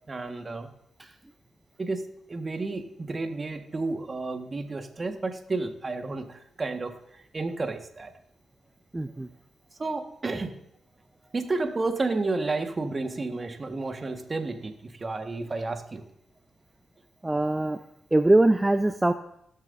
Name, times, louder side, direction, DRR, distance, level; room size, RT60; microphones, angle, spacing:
voice 1, 0.1-0.7 1.8-8.1 9.8-10.5 11.3-16.0, right 3 dB, 40° right, 6 dB, 1.6 m, -31 dB
voice 2, 8.9-9.3 17.2-17.8 18.1-19.1, right 2 dB, 20° right, 8 dB, 0.7 m, -22 dB
19.5 x 7.5 x 2.7 m, 0.77 s
hypercardioid pair, 40°, 0 cm